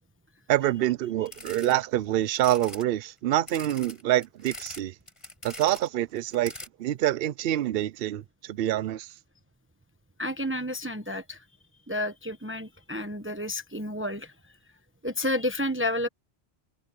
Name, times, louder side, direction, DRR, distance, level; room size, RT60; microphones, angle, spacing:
voice 1, 0.5-4.9 5.4-6.5 6.8-9.1, right 13 dB, 60° right, 0.7 m, -26 dB
sound 1, 1.3-1.8 2.3-2.8 3.5-4.8 5.1-5.9 6.2-6.7, left 1 dB, 25° left, 5.4 m, -43 dB
voice 2, 10.2-11.4 11.9-14.3 15.0-16.1, left 1 dB, 10° right, 1.0 m, -30 dB
omnidirectional pair, 1.3 m